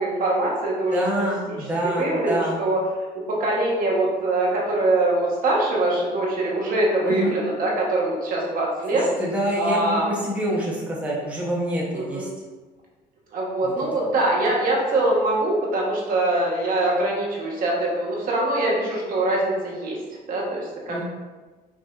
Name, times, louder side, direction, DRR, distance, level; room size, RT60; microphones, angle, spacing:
voice 1, 0.0-1.0 1.5-1.6 1.8-2.8 3.1-9.1 9.6-10.1 11.9-12.3 13.3-20.0 20.3-21.0, right 2 dB, 55° right, -3 dB, 1.0 m, -23 dB
voice 2, 0.9-2.6 7.0-7.3 8.9-12.3 13.6-13.7 20.9-21.0, equal, 10° right, -5 dB, 0.8 m, -26 dB
5.3 x 2.6 x 2.3 m, 1.3 s
cardioid pair, 110°, 17 cm